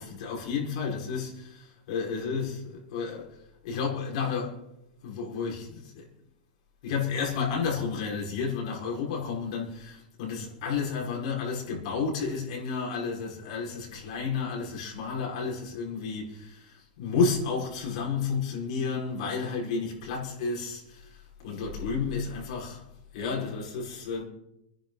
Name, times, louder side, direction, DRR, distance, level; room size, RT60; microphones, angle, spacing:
voice 1, 0.0-3.3 3.6-4.6 5.0-6.1 6.8-22.8 23.1-24.2, left 5 dB, 50° left, 5.4 m, -31 dB
28.0 x 10.5 x 4.1 m
supercardioid pair, 175°, 5 cm